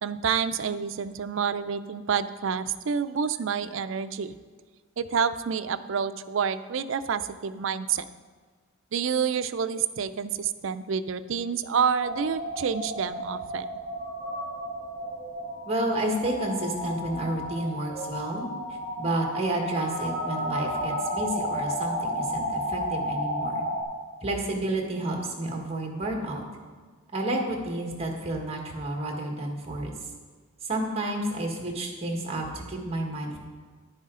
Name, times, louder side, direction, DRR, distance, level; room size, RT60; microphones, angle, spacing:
voice 1, 0.0-4.3 5.0-8.1 8.9-13.7, right 6 dB, 65° right, 12 dB, 0.4 m, -28 dB
sound 1, 12.0-23.8, equal, 55° left, 3.3 m, -32 dB
voice 2, 15.7-18.5 19.0-23.6 24.2-26.4 27.1-29.9 30.6-33.4, right 1 dB, 30° right, 1 dB, 1.4 m, -30 dB
11.0 x 9.6 x 3.7 m, 1.5 s
head